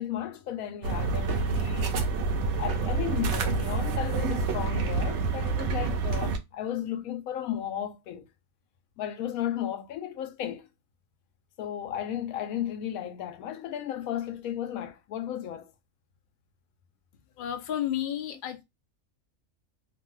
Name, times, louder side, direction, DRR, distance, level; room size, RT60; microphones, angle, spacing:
voice 1, 0.0-2.0 2.6-8.2 9.0-10.7 11.6-15.7, left 10 dB, 85° left, 1.0 m, -34 dB
sound 1, 0.8-6.4, right 4 dB, 65° right, 0.8 m, -28 dB
voice 2, 17.4-18.6, left 11 dB, 55° left, 0.6 m, -31 dB
2.7 x 2.2 x 3.1 m
omnidirectional pair, 1.5 m